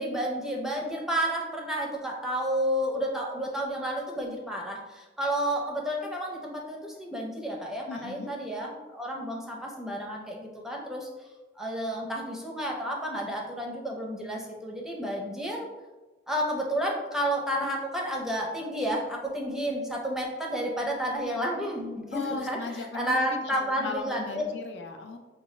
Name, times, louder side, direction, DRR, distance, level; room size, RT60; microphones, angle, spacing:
voice 1, 0.0-11.1 11.6-15.7 16.3-24.4, equal, 5° right, -1 dB, 0.5 m, -31 dB
voice 2, 7.9-8.3 22.1-25.2, left 4 dB, 75° left, 3 dB, 0.5 m, -37 dB
4.8 x 2.3 x 3.1 m, 1.2 s
head